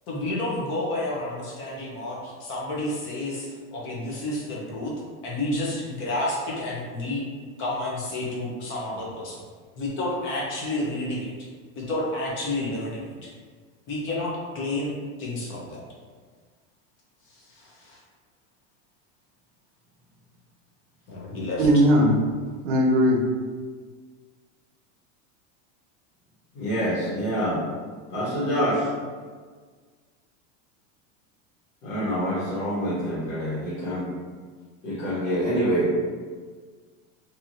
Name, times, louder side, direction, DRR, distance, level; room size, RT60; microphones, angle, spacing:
voice 1, 0.1-4.9 5.2-7.2 7.6-9.4 9.8-11.3 11.8-13.3 13.9-14.9 15.2-15.8 17.3-18.0 21.1-21.8, left 1 dB, 30° left, -4 dB, 0.7 m, -30 dB
voice 2, 21.6-22.2 22.6-23.2, equal, 65° right, 1 dB, 0.7 m, -18 dB
voice 3, 26.5-27.6 28.1-28.9 31.8-34.0 34.8-35.9, equal, 85° left, -9 dB, 1.3 m, -26 dB
2.9 x 2.7 x 2.6 m, 1.6 s
supercardioid pair, 150°, 39 cm